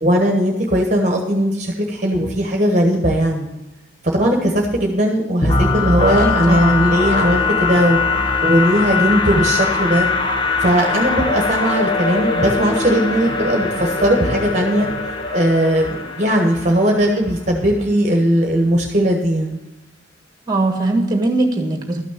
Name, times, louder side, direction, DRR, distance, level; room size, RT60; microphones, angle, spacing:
voice 1, 0.0-3.5 4.1-8.0 8.4-10.1 10.6-14.9 15.3-19.6, equal, 35° right, 1 dB, 1.2 m, -18 dB
sound 1, 5.4-17.2, left 3 dB, 25° left, 0.9 m, -21 dB
voice 2, 6.1-6.8 20.5-22.1, right 2 dB, 20° right, 3 dB, 1.6 m, -20 dB
12.5 x 6.2 x 7.3 m, 0.96 s
head